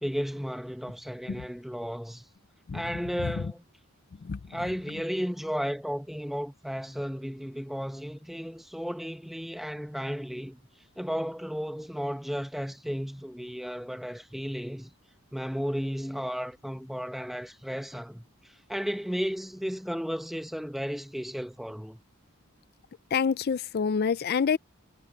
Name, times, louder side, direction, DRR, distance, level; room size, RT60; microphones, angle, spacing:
voice 1, 0.0-2.2 2.7-3.6 4.5-10.6 11.0-14.9 15.3-22.0, equal, ahead, 0.9 m, -34 dB
voice 2, 23.1-24.6, left 6 dB, 45° left, 0.4 m, -26 dB
head